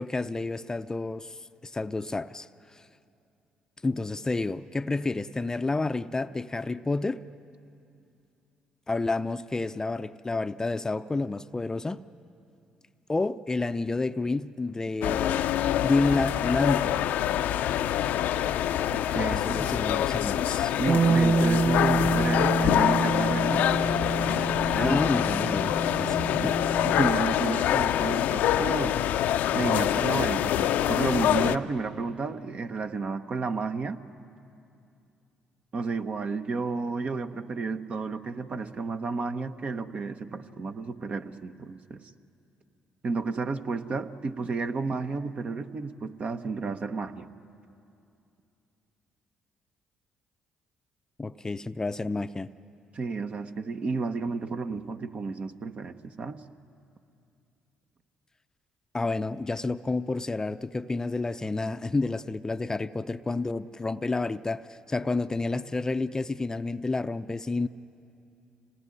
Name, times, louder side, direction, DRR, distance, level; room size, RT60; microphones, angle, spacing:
voice 1, 0.0-1.4 1.6-2.5 2.7-2.8 3.8-7.2 8.9-12.0 13.1-15.4 15.8-17.1 19.1-20.7 24.7-26.5 51.2-52.5 58.9-67.7, left 3 dB, 20° left, 0.6 m, -29 dB
sound 1, 15.0-31.6, left 11 dB, 75° left, 0.6 m, -25 dB
voice 2, 18.9-19.7 20.8-23.7 24.8-25.3 26.2-26.6 26.8-29.0 29.5-34.0 35.7-42.0 43.0-47.3 52.9-56.4, right 4 dB, 45° right, 1.0 m, -32 dB
Bass guitar, 20.9-27.1, right 4 dB, 25° right, 0.8 m, -27 dB
26.5 x 19.5 x 9.8 m
supercardioid pair, 65°, 3 cm